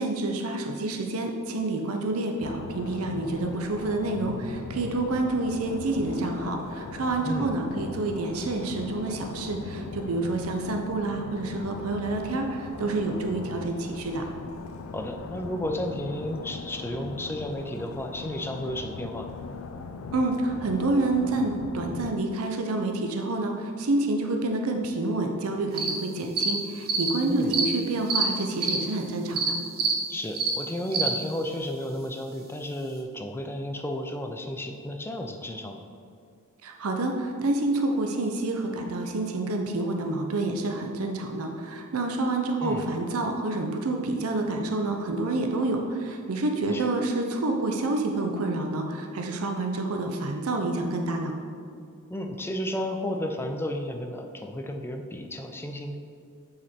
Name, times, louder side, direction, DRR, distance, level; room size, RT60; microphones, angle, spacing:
voice 1, 0.0-14.2 20.1-29.5 36.6-51.3, right 2 dB, 75° right, 3 dB, 0.6 m, -28 dB
sound 1, 2.4-22.1, left 4 dB, 65° left, 0.4 m, -39 dB
voice 2, 14.9-19.3 27.3-27.6 30.1-35.8 42.6-42.9 46.7-46.9 52.1-56.0, left 1 dB, 10° left, 4 dB, 0.4 m, -33 dB
sound 2, 25.8-25.9 26.4-26.5 26.9-27.1 27.5-27.7 28.1-28.2 28.6-28.8 29.4-29.5 29.8-29.9 30.3-30.5 30.9-31.1, right 5 dB, 45° right, 0.9 m, -25 dB
7.2 x 5.0 x 4.3 m, 2.4 s
head